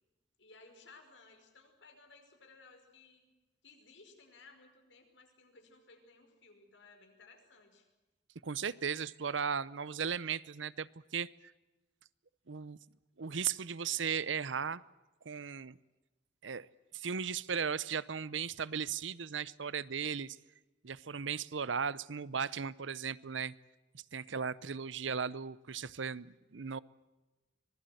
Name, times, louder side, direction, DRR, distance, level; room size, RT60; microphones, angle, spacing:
voice 1, 0.4-3.3 3.6-7.9, left 3 dB, 75° left, 4 dB, 5.3 m, -59 dB
voice 2, 8.4-11.3 12.5-12.8 13.2-14.8 15.2-15.8 16.4-16.7 16.9-20.4 20.8-23.5 23.9-26.8, right 6 dB, 80° right, 20 dB, 0.7 m, -36 dB
25.5 x 20.0 x 7.9 m, 1.1 s
head